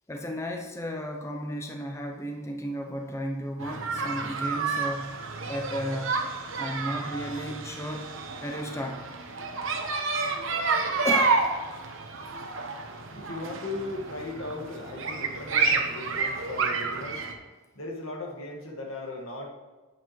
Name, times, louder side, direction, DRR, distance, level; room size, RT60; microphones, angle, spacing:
voice 1, 0.1-5.2 5.5-6.2 6.5-8.1 8.4-9.0 11.0-11.4, equal, 15° left, 3 dB, 0.5 m, -33 dB
sound 1, 3.6-17.3, right 4 dB, 65° right, 1.0 m, -30 dB
voice 2, 13.1-17.2 17.7-19.5, left 2 dB, 80° left, 0 dB, 1.7 m, -37 dB
9.2 x 8.6 x 3.1 m, 1.3 s
head